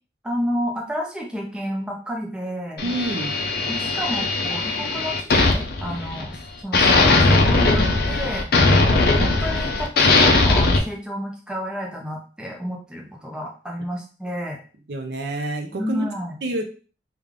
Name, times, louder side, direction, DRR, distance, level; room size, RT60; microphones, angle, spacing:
voice 1, 0.2-2.8 3.7-8.5 8.9-9.9 10.2-14.6 15.7-16.3, equal, 5° right, -1 dB, 0.6 m, -30 dB
sound 1, 2.8-6.4 6.7-10.8, left 3 dB, 55° left, 0.5 m, -19 dB
voice 2, 2.8-3.4 14.9-16.1 16.4-16.6, right 2 dB, 65° right, 5 dB, 0.5 m, -27 dB
3.4 x 2.2 x 3.6 m, 0.38 s
head